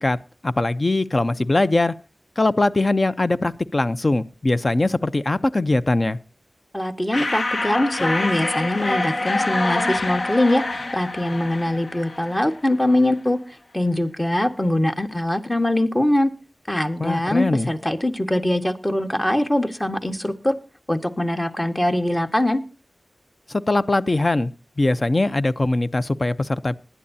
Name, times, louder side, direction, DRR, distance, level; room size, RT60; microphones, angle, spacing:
voice 1, 0.0-1.9 2.4-6.2 17.0-17.7 23.5-24.5 24.8-26.7, left 2 dB, 45° left, 0.7 m, -21 dB
voice 2, 6.7-10.6 10.9-13.4 13.7-16.3 16.7-20.5 20.9-22.6, left 1 dB, 20° left, 1.5 m, -22 dB
sound 1, 7.1-12.7, left 2 dB, 70° left, 1.0 m, -26 dB
20.0 x 11.0 x 2.8 m
cardioid pair, 45°, 0 cm